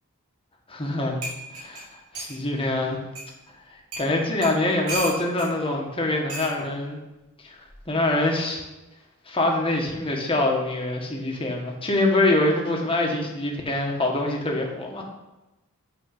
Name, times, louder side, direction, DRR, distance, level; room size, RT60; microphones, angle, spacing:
voice 1, 0.7-1.2 1.6-3.0 4.0-7.0 7.4-7.5 7.9-8.6 9.3-15.0, left 2 dB, 25° left, 0 dB, 1.3 m, -24 dB
sound 1, 0.8-0.9 1.2-2.4 3.2-3.3 3.9-4.1 4.4-5.5 6.3-6.5 7.6-7.9, right 2 dB, 75° right, 3.2 m, -34 dB
8.1 x 4.5 x 6.5 m, 1.0 s
head